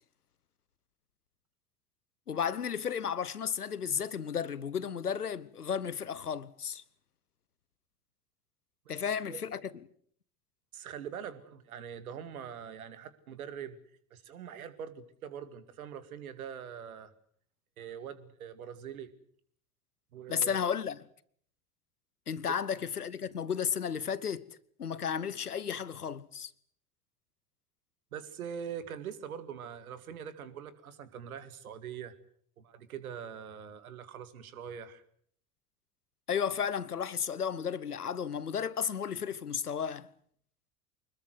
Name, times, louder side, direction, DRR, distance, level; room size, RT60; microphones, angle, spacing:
voice 1, 2.3-6.8 8.9-9.6 20.3-21.0 22.3-24.5 24.8-26.5 36.3-40.1, left 7 dB, 80° left, 1.1 m, -33 dB
voice 2, 10.7-13.8 14.1-17.1 17.8-19.1 20.1-20.6 22.4-22.5 28.1-32.1 32.6-35.0, right 8 dB, 70° right, 2.3 m, -43 dB
25.0 x 21.0 x 8.1 m
figure-of-eight pair, 70°, 45 cm